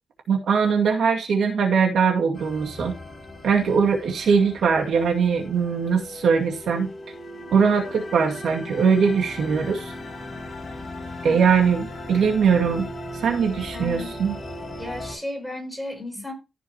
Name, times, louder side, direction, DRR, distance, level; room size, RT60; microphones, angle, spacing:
voice 1, 0.3-2.9 3.4-6.9 7.5-9.9 11.2-12.9 13.2-14.4, right 6 dB, 75° right, 2.2 m, -21 dB
sound 1, 2.3-15.1, left 1 dB, 35° left, 6.0 m, -38 dB
voice 2, 13.7-14.1 14.8-16.3, left 1 dB, 5° right, 6.0 m, -34 dB
15.5 x 6.8 x 2.9 m
wide cardioid pair, 120°, 0 cm